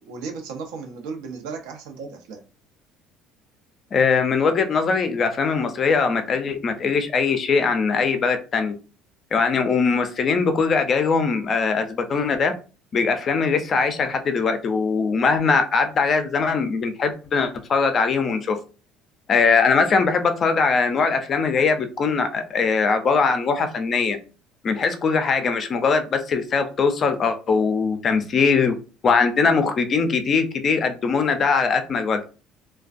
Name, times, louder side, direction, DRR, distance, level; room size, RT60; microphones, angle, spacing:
voice 1, 0.1-2.4, right 4 dB, 90° right, 4 dB, 0.6 m, -35 dB
voice 2, 3.9-8.7 9.3-12.5 12.9-18.6 19.3-24.2 24.6-28.7 29.0-32.2, left 5 dB, 35° left, 7 dB, 0.4 m, -21 dB
2.3 x 2.1 x 2.5 m, 0.34 s
cardioid pair, 140°, 0 cm